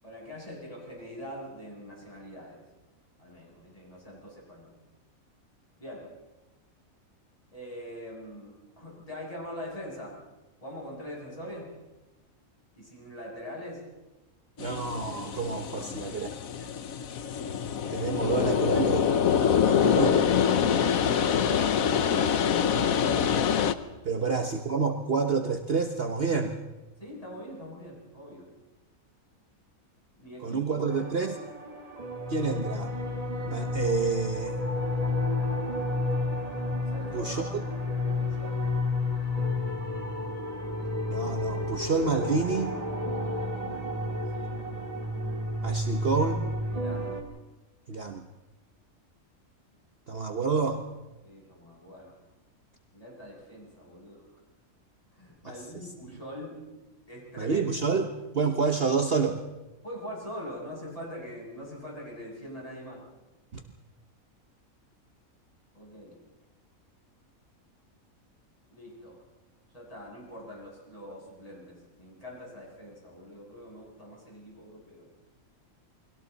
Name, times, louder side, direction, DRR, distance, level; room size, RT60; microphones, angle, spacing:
voice 1, 0.0-2.6 3.2-4.8 5.8-6.1 7.5-10.2 10.6-11.7 12.8-13.8 15.8-16.1 19.7-20.3 24.2-24.3 27.0-28.5 30.2-31.1 36.9-37.6 38.0-38.6 44.3-44.6 46.7-47.1 51.2-52.2 52.9-54.2 55.1-56.6 57.1-57.6 59.8-63.1 65.7-66.2 68.7-69.2 69.7-75.1, equal, 25° left, -4 dB, 7.3 m, -43 dB
sound 1, 14.6-23.7, left 8 dB, 75° left, 1.3 m, -25 dB
voice 2, 14.6-16.3 16.6-16.7 17.9-19.1 19.7-20.2 24.0-26.5 30.4-31.3 32.3-32.9 33.5-34.6 37.1-37.4 41.1-42.8 45.6-46.4 47.9-48.2 50.1-50.8 55.5-55.6 56.1-56.2 57.4-58.1 58.3-59.4 63.5-63.6, right 5 dB, 45° right, 5 dB, 1.2 m, -28 dB
sound 2, 30.9-47.2, left 2 dB, 25° right, 2.5 m, -31 dB
29.5 x 21.5 x 4.1 m, 1.1 s
omnidirectional pair, 1.5 m